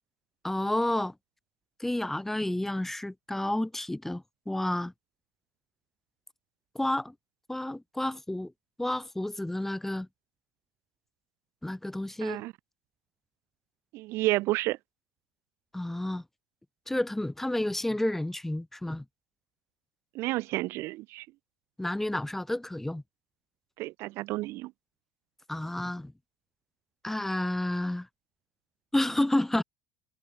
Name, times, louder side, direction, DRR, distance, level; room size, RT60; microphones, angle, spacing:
voice 1, 0.4-1.1 1.8-4.9 6.7-7.1 7.5-8.5 8.8-10.1 11.6-12.4 15.7-16.2 16.9-19.0 21.8-23.0 25.5-26.1 27.0-28.1 28.9-29.6, left 1 dB, 5° left, 0.9 m, -30 dB
voice 2, 12.2-12.5 13.9-14.8 20.1-21.3 23.8-24.7, right 19 dB, 65° right, 0.7 m, -30 dB
supercardioid pair, 95°, 5 cm